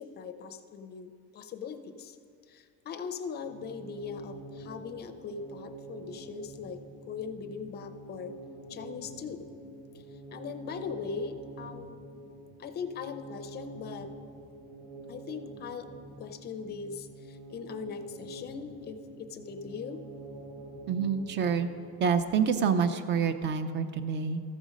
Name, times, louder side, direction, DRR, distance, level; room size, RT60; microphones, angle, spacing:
voice 1, 0.0-2.2 2.5-6.8 7.1-8.3 8.7-9.4 9.9-10.0 10.3-12.0 12.6-14.1 15.1-15.9 16.2-20.0, left 6 dB, 30° left, 9 dB, 0.5 m, -40 dB
sound 1, 3.3-22.2, right 2 dB, 80° right, 2.4 m, -47 dB
voice 2, 20.9-21.7 22.0-24.4, right 6 dB, 35° right, 11 dB, 0.5 m, -27 dB
14.0 x 5.2 x 5.0 m, 2.3 s
cardioid pair, 160°, 34 cm